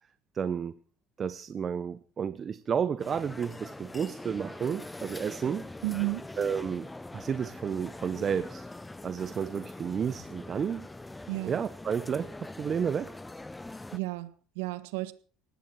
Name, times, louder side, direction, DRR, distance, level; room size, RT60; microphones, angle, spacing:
voice 1, 0.3-0.7 1.2-5.7 6.4-8.7 9.0-10.9 11.5-13.1, right 7 dB, 40° right, 14 dB, 1.0 m, -31 dB
sound 1, 3.0-14.0, left 2 dB, 10° left, 0.8 m, -43 dB
voice 2, 5.8-6.3 11.3-11.5 13.9-15.1, right 22 dB, 85° right, 14 dB, 1.4 m, -32 dB
19.0 x 15.0 x 4.8 m, 0.41 s
supercardioid pair, 85°, 0 cm